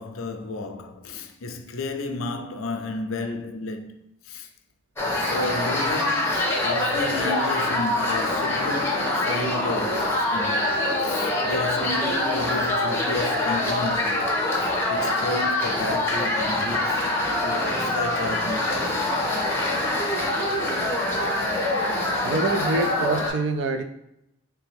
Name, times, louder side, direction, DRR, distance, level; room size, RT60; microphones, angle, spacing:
voice 1, 0.0-4.5 5.2-10.7 11.0-17.0 17.4-19.1, left 2 dB, 85° left, 0.5 m, -32 dB
sound 1, 5.0-23.3, left 1 dB, 10° left, 0.6 m, -24 dB
voice 2, 22.2-23.8, right 3 dB, 65° right, 0.4 m, -25 dB
3.4 x 3.3 x 3.4 m
head